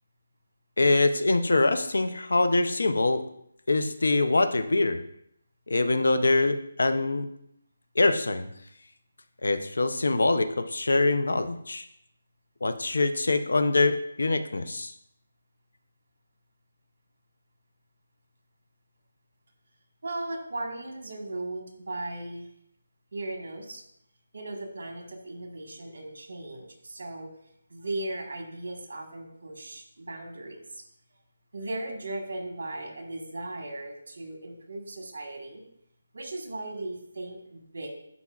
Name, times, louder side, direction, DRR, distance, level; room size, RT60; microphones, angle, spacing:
voice 1, 0.8-3.2 3.7-5.0 5.7-7.3 8.0-8.5 9.4-11.8 12.6-14.9, left 2 dB, 80° left, 9 dB, 0.6 m, -24 dB
voice 2, 20.0-22.5 23.1-23.8 24.3-27.3 27.7-30.8 31.5-35.6 36.1-37.9, right 2 dB, 60° right, 3 dB, 1.5 m, -37 dB
11.0 x 4.2 x 2.4 m, 0.73 s
hypercardioid pair, 180°, 0 cm